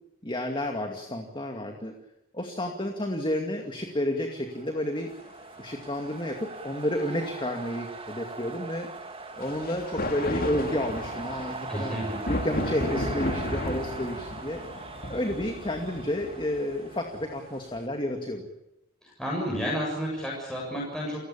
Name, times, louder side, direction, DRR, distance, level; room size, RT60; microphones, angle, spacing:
voice 1, 0.2-2.0 2.3-5.1 5.6-8.9 9.4-12.0 12.3-14.6 15.1-18.5, left 1 dB, 25° left, 4 dB, 2.3 m, -31 dB
sound 1, 4.1-17.9, right 3 dB, 25° right, 1.7 m, -41 dB
sound 2, 5.5-5.6 9.4-17.7, left 1 dB, 45° left, 2.8 m, -34 dB
voice 2, 11.7-12.2 19.0-21.2, equal, 5° left, -4 dB, 7.4 m, -31 dB
30.0 x 16.0 x 8.6 m, 0.90 s
head